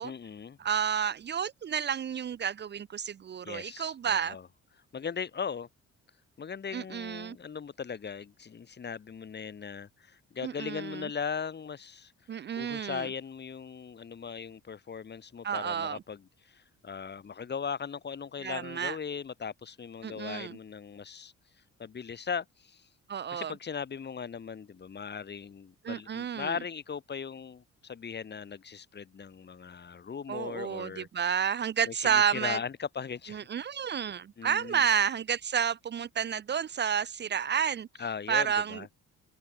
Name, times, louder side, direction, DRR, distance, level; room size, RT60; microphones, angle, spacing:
voice 1, 0.0-0.6 3.4-4.5 4.9-5.7 6.4-12.1 12.5-21.3 21.8-22.9 23.3-31.1 31.8-33.4 34.4-34.8 38.0-38.9, left 6 dB, 35° left, 2.6 m, -38 dB
voice 2, 0.6-4.4 6.7-7.4 10.4-11.1 12.3-13.1 15.4-16.0 18.4-19.0 20.0-20.6 23.1-23.5 25.8-26.6 30.3-32.6 33.3-37.9 38.3-38.9, right 8 dB, 35° right, 0.6 m, -30 dB
open air
cardioid pair, 115°, 29 cm